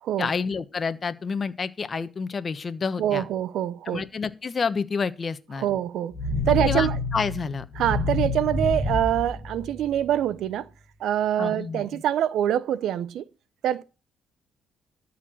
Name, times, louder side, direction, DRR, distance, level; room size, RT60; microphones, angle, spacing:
voice 1, 0.2-3.3 3.9-5.7 6.6-7.6 11.4-12.0, left 5 dB, 40° left, 1.1 m, -29 dB
voice 2, 3.0-4.0 5.6-6.1 6.5-7.0 7.8-10.7 11.0-13.2 13.6-13.8, right 11 dB, 75° right, 0.6 m, -25 dB
sound 1, 6.1-10.2, left 3 dB, 15° left, 2.3 m, -28 dB
13.0 x 4.4 x 7.8 m
cardioid pair, 90°, 0 cm